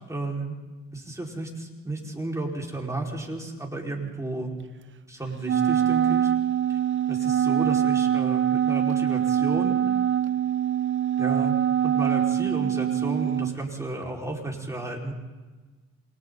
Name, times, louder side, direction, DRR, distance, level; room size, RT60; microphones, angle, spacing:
voice 1, 0.1-0.6 0.9-4.5 5.1-6.3 6.7-6.8 7.1-9.8 11.2-11.5 11.8-15.1, right 2 dB, 10° right, -2 dB, 5.1 m, -32 dB
Wind instrument woodwind instrument, 5.4-13.6, right 10 dB, 40° right, 0.7 m, -24 dB
28.0 x 25.0 x 4.1 m, 1.3 s
cardioid pair, 90°, 30 cm